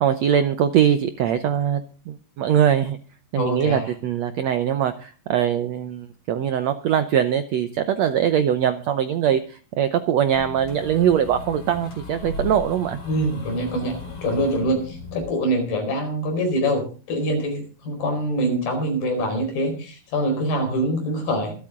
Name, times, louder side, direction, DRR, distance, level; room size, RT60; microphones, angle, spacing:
voice 1, 0.0-1.8 2.1-3.0 3.3-13.0, right 9 dB, 75° right, 10 dB, 1.6 m, -22 dB
voice 2, 3.4-3.9 13.1-21.5, equal, 75° left, 4 dB, 6.4 m, -24 dB
sound 1, 10.3-15.2, left 3 dB, 40° left, 5.3 m, -36 dB
25.5 x 8.5 x 3.7 m, 0.37 s
omnidirectional pair, 4.1 m